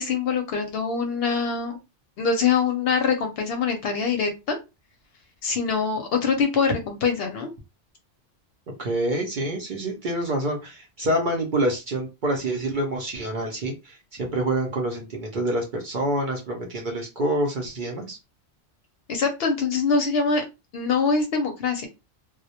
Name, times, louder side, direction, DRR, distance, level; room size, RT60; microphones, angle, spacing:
voice 1, 0.0-1.8 2.2-4.6 5.4-7.5 19.1-20.4 20.7-21.9, left 5 dB, 65° left, 5 dB, 0.7 m, -24 dB
voice 2, 8.7-18.2, right 1 dB, 55° right, 0 dB, 0.6 m, -27 dB
2.2 x 2.0 x 2.7 m, 0.26 s
omnidirectional pair, 1.2 m